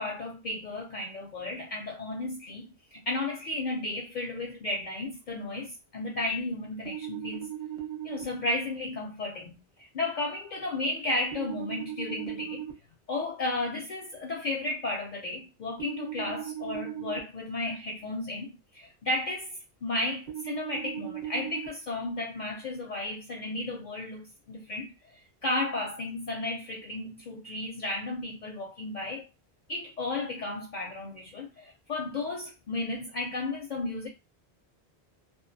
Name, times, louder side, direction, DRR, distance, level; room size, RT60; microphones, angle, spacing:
voice 1, 0.0-7.5 8.0-12.6 13.1-29.3 29.7-34.1, left 2 dB, 55° left, 0.5 m, -34 dB
sound 1, 6.9-8.2 11.3-12.7 15.8-17.2 20.3-21.7, right 11 dB, 45° right, 0.8 m, -37 dB
2.3 x 2.2 x 2.6 m
omnidirectional pair, 1.1 m